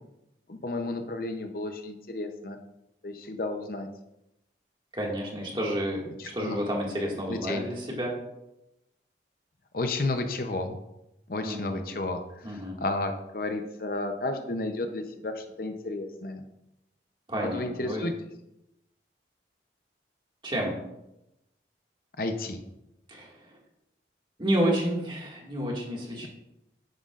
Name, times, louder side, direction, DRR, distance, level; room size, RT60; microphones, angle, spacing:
voice 1, 0.5-2.6 3.0-3.9 6.2-6.6 7.3-7.6 9.7-10.8 11.3-16.4 17.3-18.1 22.2-22.6, left 2 dB, 50° left, 6 dB, 0.7 m, -32 dB
voice 2, 4.9-8.1 11.4-11.8 12.4-12.8 17.3-18.1 20.4-20.8 23.1-23.6 24.4-26.3, equal, 25° right, -2 dB, 2.0 m, -30 dB
10.5 x 9.2 x 2.5 m, 0.89 s
head